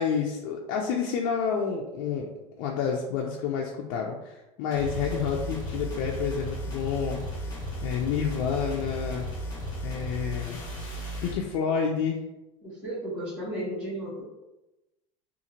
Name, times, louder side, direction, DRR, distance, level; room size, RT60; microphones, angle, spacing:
voice 1, 0.0-2.3 2.6-7.2 7.8-9.3 9.8-10.6 11.2-12.2, left 6 dB, 60° left, -1 dB, 0.4 m, -29 dB
sound 1, 4.7-11.4, equal, 20° left, 1.0 m, -35 dB
voice 2, 12.6-14.2, right 1 dB, 10° right, -13 dB, 0.9 m, -34 dB
2.6 x 2.5 x 2.8 m, 0.98 s
supercardioid pair, 155°, 17 cm